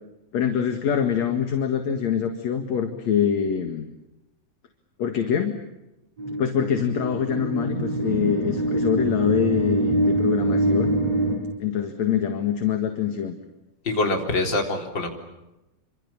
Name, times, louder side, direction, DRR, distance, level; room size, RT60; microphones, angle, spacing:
voice 1, 0.3-3.9 5.0-5.6 6.4-10.9 11.6-13.4, left 8 dB, 55° left, 6 dB, 2.8 m, -24 dB
sound 1, 6.2-11.4, right 1 dB, 45° right, 7.0 m, -24 dB
voice 2, 13.9-15.1, left 2 dB, 30° left, 3 dB, 4.3 m, -24 dB
28.0 x 26.0 x 7.2 m, 0.96 s
omnidirectional pair, 4.0 m